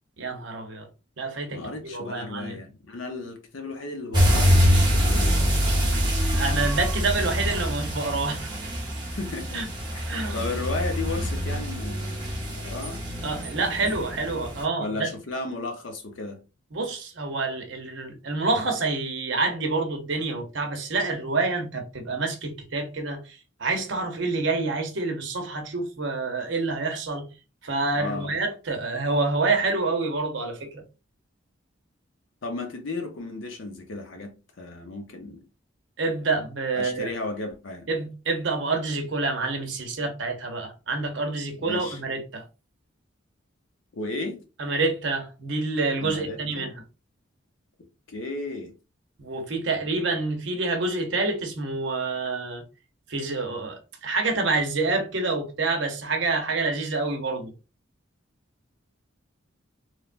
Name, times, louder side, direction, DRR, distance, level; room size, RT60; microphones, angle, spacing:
voice 1, 0.2-0.9 1.2-1.6 1.9-2.6 6.3-8.5 9.5-9.6 10.1-10.4 13.2-15.1 16.7-27.3 27.6-30.8 36.0-37.1 37.9-42.4 44.6-46.7 49.2-52.6 53.1-57.5, right 3 dB, 65° right, 0.7 m, -27 dB
voice 2, 1.5-5.9 9.1-9.6 9.9-13.1 14.8-16.4 27.9-28.4 32.4-35.4 36.7-37.9 41.6-42.0 43.9-44.4 46.0-46.7 48.1-48.7, left 2 dB, 75° left, 0.7 m, -34 dB
sound 1, 4.1-14.6, equal, 20° right, 0.7 m, -25 dB
3.1 x 2.2 x 2.4 m
head